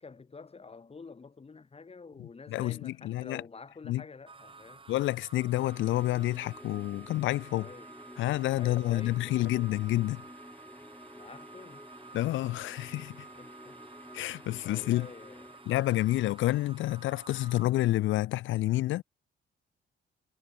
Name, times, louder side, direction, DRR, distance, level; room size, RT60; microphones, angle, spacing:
voice 1, 0.0-4.8 7.5-7.9 8.6-9.4 11.1-11.9 13.4-13.8 14.6-15.6, left 4 dB, 30° left, 4.6 m, -48 dB
voice 2, 2.5-3.4 3.8-4.0 4.9-7.7 8.2-10.2 12.1-13.3 14.1-15.1 15.7-19.0, left 16 dB, 80° left, 0.5 m, -29 dB
sound 1, 4.3-17.6, right 4 dB, 25° right, 2.4 m, -52 dB
sound 2, 5.4-15.8, left 1 dB, 5° left, 1.3 m, -51 dB
cardioid pair, 90°, 20 cm